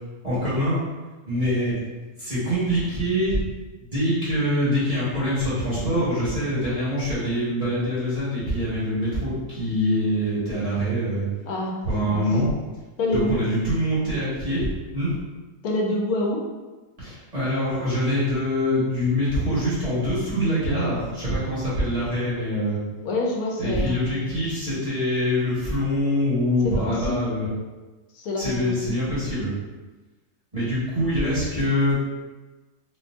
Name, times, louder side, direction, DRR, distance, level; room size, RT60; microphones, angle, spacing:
voice 1, 0.2-0.8 1.2-1.8 2.2-3.4 3.8-11.2 11.8-12.5 13.1-15.1 17.0-22.8 23.6-27.5 28.4-29.5 30.5-32.0, equal, 25° right, -11 dB, 1.5 m, -24 dB
voice 2, 11.4-11.8 12.1-12.3 13.0-13.4 15.6-16.4 23.0-24.3 26.6-27.2 28.1-28.9, left 2 dB, 85° left, -1 dB, 1.1 m, -26 dB
4.2 x 2.4 x 2.5 m, 1.2 s
omnidirectional pair, 1.5 m